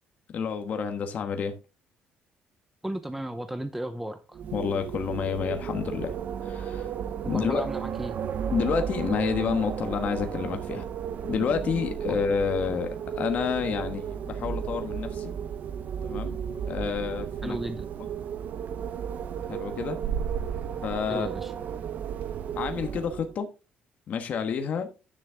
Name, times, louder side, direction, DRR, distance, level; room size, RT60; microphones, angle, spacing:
voice 1, 0.3-1.6 4.5-6.9 7.3-7.6 8.5-10.9 11.3-15.3 16.0-16.4 16.7-17.6 19.5-20.0 20.8-21.3 22.6-23.5 24.1-24.9, left 6 dB, 50° left, 1.3 m, -29 dB
voice 2, 2.8-4.4 7.2-8.1 12.1-12.2 17.4-17.8 21.1-21.5, right 1 dB, 5° right, 0.6 m, -34 dB
Wind, 4.3-23.4, right 8 dB, 55° right, 0.6 m, -33 dB
10.0 x 6.4 x 3.5 m
cardioid pair, 130°, 3 cm